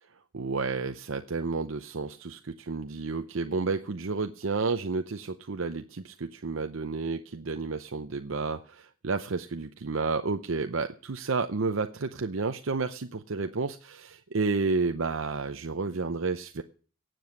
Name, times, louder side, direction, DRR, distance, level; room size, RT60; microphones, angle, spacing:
voice 1, 0.3-16.6, right 4 dB, 65° right, 7 dB, 0.7 m, -31 dB
17.5 x 7.8 x 6.3 m, 0.40 s
head